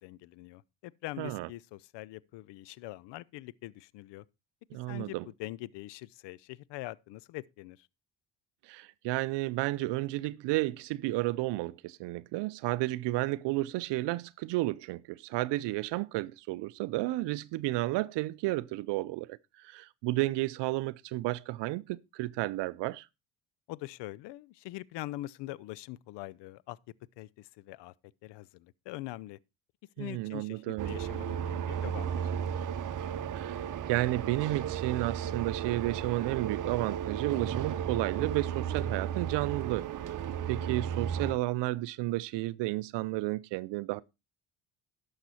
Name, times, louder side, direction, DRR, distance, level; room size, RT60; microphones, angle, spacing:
voice 1, 0.0-4.2 4.9-7.9 23.7-26.8 27.2-27.9 28.2-29.4 30.0-32.7, left 17 dB, 65° left, 0.6 m, -43 dB
voice 2, 1.2-1.5 4.7-5.2 8.6-23.1 30.0-30.9 33.3-39.9 40.5-44.0, right 18 dB, 65° right, 0.6 m, -32 dB
sound 1, 30.8-41.3, right 8 dB, 40° right, 0.9 m, -34 dB
11.5 x 6.7 x 4.2 m
supercardioid pair, 70°, 46 cm